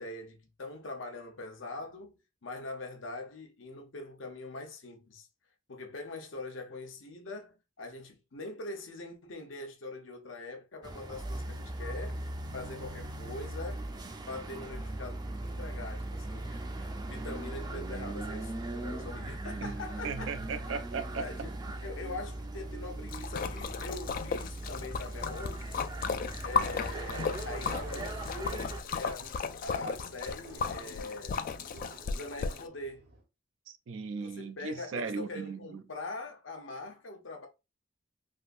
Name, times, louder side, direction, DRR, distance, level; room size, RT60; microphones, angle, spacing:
voice 1, 0.0-5.3 5.7-12.2 12.5-20.3 21.1-21.5 21.8-25.8 26.4-31.5 32.1-33.1 34.2-37.5, left 2 dB, 85° left, 0.9 m, -43 dB
sound 1, 10.8-28.8, right 1 dB, 20° right, 0.4 m, -39 dB
voice 2, 20.0-21.3 33.7-35.8, right 5 dB, 80° right, 0.4 m, -37 dB
Splash splatter, 23.1-32.6, left 5 dB, 45° left, 0.3 m, -35 dB
sound 2, 26.3-33.2, right 2 dB, 55° right, 0.8 m, -50 dB
3.5 x 2.6 x 2.5 m
head